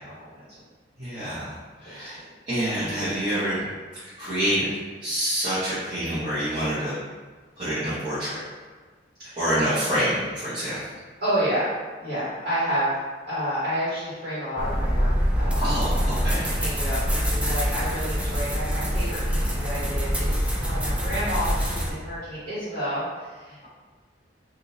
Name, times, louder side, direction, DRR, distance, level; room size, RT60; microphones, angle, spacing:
voice 1, 1.0-2.2 2.5-3.6 4.0-4.7 5.0-6.9 7.6-8.3 9.4-10.8 15.6-16.5, equal, 25° right, -16 dB, 1.2 m, -27 dB
voice 2, 1.8-2.2 9.2-9.4 11.2-11.7 12.0-12.9 13.3-15.1 15.4-15.6 15.9-16.0 16.3-23.7, equal, 55° right, -12 dB, 1.5 m, -30 dB
sound 1, 14.6-21.9, equal, 5° right, 0.4 m, -25 dB
3.7 x 2.5 x 2.8 m, 1.4 s
head